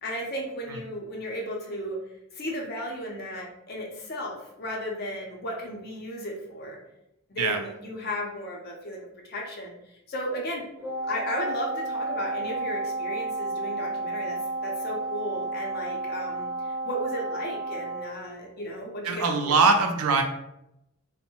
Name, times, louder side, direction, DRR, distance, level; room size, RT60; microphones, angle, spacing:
voice 1, 0.0-2.0 2.3-6.8 7.3-9.7 10.1-10.6 11.1-14.4 14.6-19.7, equal, 45° left, -1 dB, 0.5 m, -35 dB
Wind instrument woodwind instrument, 10.8-18.1, right 2 dB, 10° right, 0.4 m, -32 dB
voice 2, 19.0-20.2, right 4 dB, 80° right, 4 dB, 0.4 m, -22 dB
2.6 x 2.0 x 2.9 m, 0.84 s
head